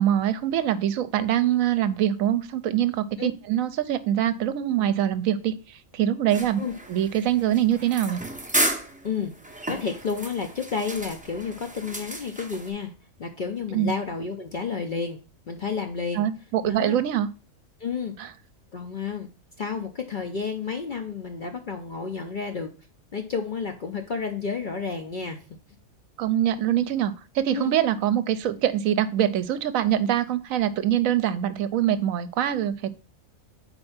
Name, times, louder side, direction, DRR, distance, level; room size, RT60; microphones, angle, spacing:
voice 1, 0.0-6.6 6.9-8.2 13.7-13.9 16.1-17.3 18.2-18.3 26.2-32.9, right 11 dB, 80° right, 12 dB, 1.0 m, -24 dB
sound 1, 6.3-12.7, right 1 dB, 10° right, 0.4 m, -32 dB
voice 2, 9.0-12.9 13.2-15.2 15.5-16.3 16.6-17.0 17.8-18.2 18.7-19.3 19.6-22.7 23.1-25.4 27.5-27.8, left 5 dB, 55° left, 5 dB, 0.6 m, -31 dB
4.4 x 4.4 x 5.6 m, 0.36 s
omnidirectional pair, 1.5 m